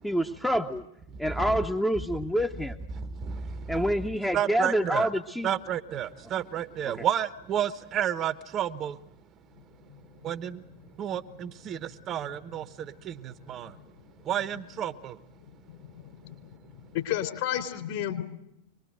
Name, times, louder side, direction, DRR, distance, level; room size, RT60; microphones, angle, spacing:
voice 1, 0.0-0.8 1.2-2.7 3.7-5.5, equal, 5° left, 6 dB, 0.8 m, -27 dB
voice 2, 1.1-1.6 3.0-3.8 4.3-5.1 5.4-9.0 10.2-10.6 11.0-13.7 14.2-15.2, right 9 dB, 30° right, 14 dB, 0.9 m, -31 dB
voice 3, 15.8-16.5 16.8-18.2, left 11 dB, 50° left, 6 dB, 3.9 m, -32 dB
25.5 x 20.5 x 7.9 m, 0.81 s
figure-of-eight pair, 90°, 0 cm